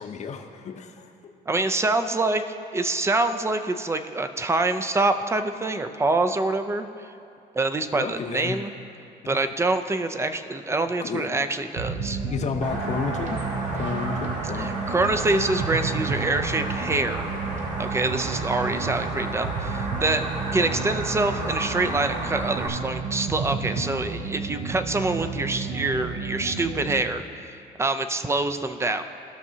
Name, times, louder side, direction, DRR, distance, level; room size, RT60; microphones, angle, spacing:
voice 1, 0.0-1.3 7.9-8.6 9.2-9.4 11.0-11.3 12.3-13.5 13.7-14.9, left 6 dB, 40° left, 5 dB, 0.8 m, -32 dB
voice 2, 1.5-7.1 7.5-8.7 9.3-12.2 14.6-17.3 17.8-20.3 20.5-29.0, right 2 dB, 15° right, 9 dB, 0.5 m, -26 dB
sound 1, 11.8-27.1, right 4 dB, 60° right, 0.8 m, -32 dB
sound 2, 12.6-22.7, right 2 dB, 45° right, 1.9 m, -33 dB
17.5 x 6.1 x 2.8 m, 2.6 s
cardioid pair, 110°, 17 cm